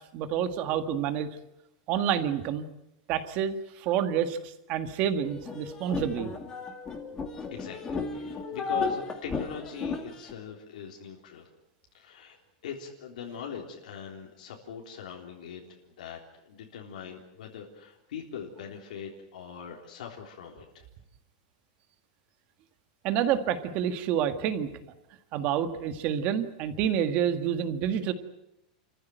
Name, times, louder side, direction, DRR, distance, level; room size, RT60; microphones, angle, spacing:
voice 1, 0.1-1.3 1.9-2.6 3.1-6.3 8.2-8.4 23.0-24.7 25.3-28.1, right 9 dB, 35° right, 9 dB, 1.7 m, -28 dB
sound 1, 5.2-10.3, left 4 dB, 15° left, 2.4 m, -34 dB
voice 2, 7.5-11.5 11.9-12.4 12.6-16.2 16.5-20.9, left 7 dB, 85° left, -1 dB, 3.8 m, -42 dB
29.0 x 14.5 x 9.3 m, 0.87 s
supercardioid pair, 170°, 4 cm